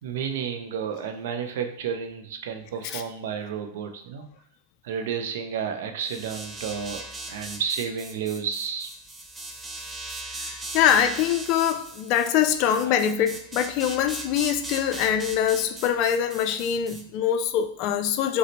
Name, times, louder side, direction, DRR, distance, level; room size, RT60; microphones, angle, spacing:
voice 1, 0.0-4.3 4.8-7.0 7.3-8.9 12.8-13.0, right 7 dB, 55° right, 6 dB, 0.5 m, -31 dB
sound 1, 6.0-17.0, right 2 dB, 10° right, 0.6 m, -39 dB
voice 2, 10.4-18.4, left 9 dB, 45° left, 9 dB, 0.3 m, -24 dB
4.8 x 2.1 x 2.9 m, 0.76 s
figure-of-eight pair, 95°, 0 cm